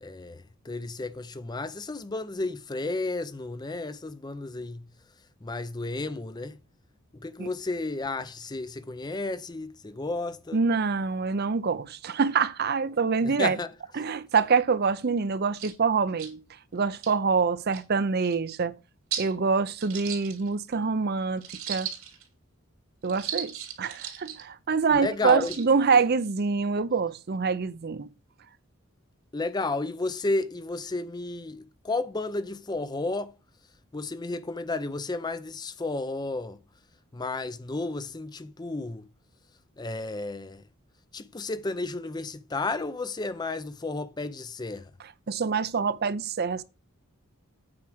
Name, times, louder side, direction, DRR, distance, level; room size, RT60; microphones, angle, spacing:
voice 1, 0.0-4.9 5.4-6.6 7.1-10.6 13.2-13.7 24.9-25.6 29.3-33.3 33.9-36.6 37.1-39.1 39.8-40.6 41.1-44.9, left 2 dB, 20° left, 0.5 m, -32 dB
voice 2, 10.5-13.6 14.0-16.4 16.7-18.7 19.2-21.9 23.0-28.1 45.3-46.6, right 5 dB, 45° right, 0.5 m, -25 dB
sound 1, 15.2-15.3 15.5-15.7 16.2-16.3 16.8-17.1 17.7-17.8 18.2-18.3 19.1-19.3 19.8-20.7 21.4-22.2 23.0-24.4 25.2-25.7, right 9 dB, 80° right, 2.9 m, -36 dB
8.7 x 4.9 x 6.1 m
head